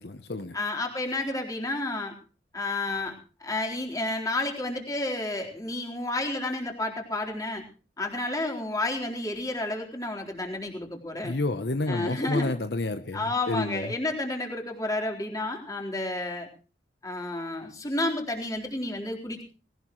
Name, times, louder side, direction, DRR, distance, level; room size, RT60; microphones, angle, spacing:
voice 1, 0.0-0.6 11.2-13.9, left 2 dB, 65° left, 9 dB, 0.9 m, -30 dB
voice 2, 0.5-2.1 2.5-3.2 3.4-7.6 8.0-11.4 11.9-12.5 13.1-16.5 17.0-19.4, left 2 dB, 20° left, 1 dB, 4.0 m, -31 dB
20.0 x 18.0 x 3.1 m, 0.36 s
head